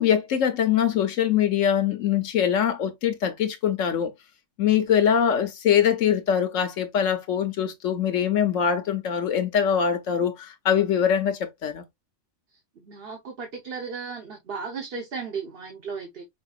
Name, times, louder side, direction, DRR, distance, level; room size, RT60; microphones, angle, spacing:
voice 1, 0.0-4.1 4.6-11.8, left 8 dB, 85° left, 1.1 m, -23 dB
voice 2, 12.8-16.2, right 5 dB, 55° right, 1.3 m, -35 dB
5.4 x 3.7 x 2.4 m
omnidirectional pair, 1.3 m